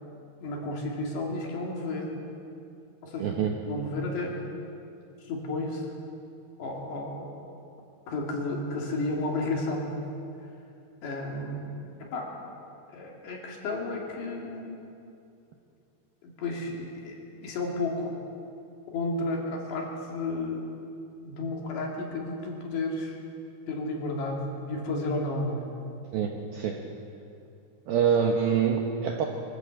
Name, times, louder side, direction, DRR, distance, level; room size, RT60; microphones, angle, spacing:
voice 1, 0.4-2.1 3.0-3.3 3.7-4.4 5.2-5.9 6.6-7.3 8.1-10.0 11.0-11.7 12.0-12.3 12.9-14.8 16.2-18.1 18.9-20.7 21.2-23.1 23.7-25.7, left 2 dB, 60° left, -1 dB, 4.5 m, -32 dB
voice 2, 3.2-3.5 26.1-26.8 27.9-29.3, right 7 dB, 70° right, 1 dB, 2.4 m, -25 dB
23.5 x 14.5 x 8.1 m, 2.6 s
omnidirectional pair, 5.7 m